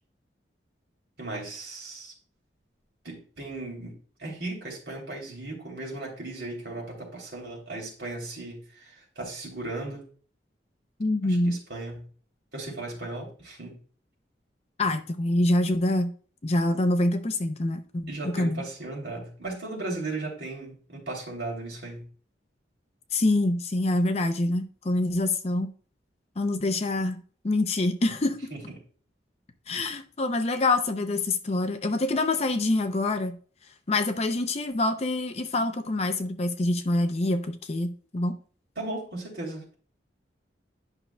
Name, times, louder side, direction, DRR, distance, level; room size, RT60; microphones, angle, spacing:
voice 1, 1.2-2.1 3.0-3.9 4.2-10.0 11.2-12.1 12.5-13.8 18.1-22.1 28.5-28.6 38.8-39.7, right 2 dB, 60° right, 3.1 m, -36 dB
voice 2, 11.0-11.6 14.8-16.1 16.4-18.6 23.1-25.7 26.4-27.2 27.4-28.5 29.7-33.4 33.9-38.4, left 2 dB, 35° left, 0.5 m, -26 dB
10.5 x 5.9 x 2.2 m
head